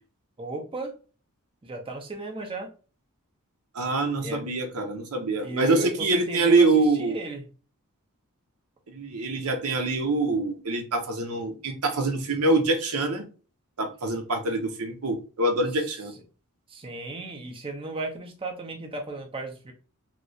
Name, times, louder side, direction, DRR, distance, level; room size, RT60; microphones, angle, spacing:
voice 1, 0.4-0.9 1.6-2.7 4.2-4.4 5.4-6.7 7.0-7.4 16.7-19.7, right 2 dB, 25° right, 3 dB, 0.6 m, -35 dB
voice 2, 3.7-7.2 8.9-13.2 13.8-16.1, right 2 dB, 80° right, 4 dB, 0.8 m, -25 dB
3.2 x 2.9 x 2.6 m, 0.35 s
head